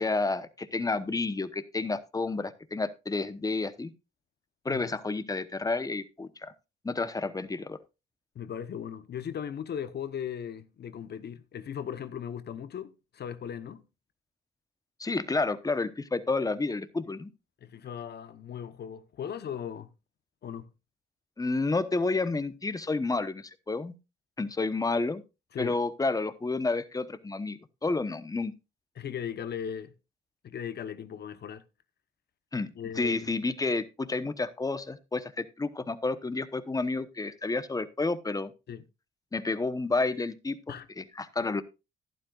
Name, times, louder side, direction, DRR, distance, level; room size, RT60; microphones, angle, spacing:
voice 1, 0.0-3.9 4.6-6.5 6.8-7.8 15.0-17.3 21.4-23.9 24.4-25.2 25.6-28.5 32.5-32.7 33.0-38.5 39.3-40.6 41.0-41.6, left 3 dB, 20° left, 1.0 m, -30 dB
voice 2, 8.3-13.8 17.6-19.9 20.4-20.7 25.5-25.8 29.0-29.9 30.4-31.6 32.8-33.3 38.7-38.8 40.7-40.9, left 8 dB, 55° left, 1.0 m, -38 dB
12.0 x 11.5 x 2.4 m
cardioid pair, 90°, 20 cm